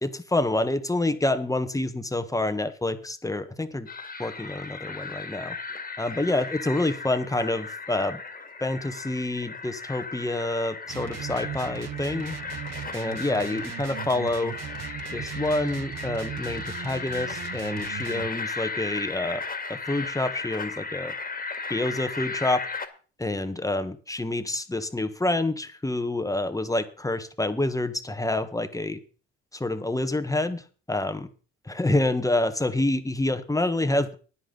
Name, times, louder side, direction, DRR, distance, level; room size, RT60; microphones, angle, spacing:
voice 1, 0.0-3.9 4.2-5.5 6.0-8.2 8.6-12.4 12.9-14.5 15.1-19.4 19.7-21.1 21.7-22.7 23.2-29.0 29.5-31.3 31.6-34.1, left 2 dB, 10° left, 10 dB, 1.4 m, -27 dB
sound 1, 3.9-22.9, left 4 dB, 25° left, 2.2 m, -36 dB
sound 2, 10.9-18.3, right 11 dB, 50° right, 0.8 m, -38 dB
14.0 x 9.8 x 4.0 m, 0.39 s
supercardioid pair, 75°, 33 cm